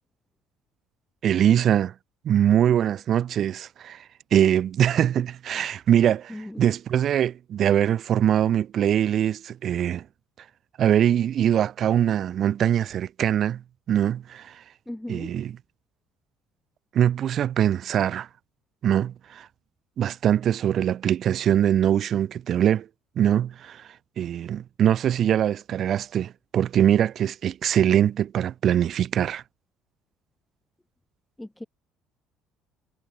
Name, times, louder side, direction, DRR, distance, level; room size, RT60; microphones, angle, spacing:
voice 1, 1.2-1.9 2.2-4.0 4.3-10.0 10.8-13.6 13.9-14.6 15.1-15.5 16.9-18.3 18.8-19.5 20.0-22.9 23.2-23.8 24.2-29.4, right 10 dB, 55° right, 0.6 m, -22 dB
voice 2, 6.3-6.7 14.9-15.4 31.4-31.7, left 1 dB, 10° left, 2.3 m, -37 dB
hypercardioid pair, 65°, 0 cm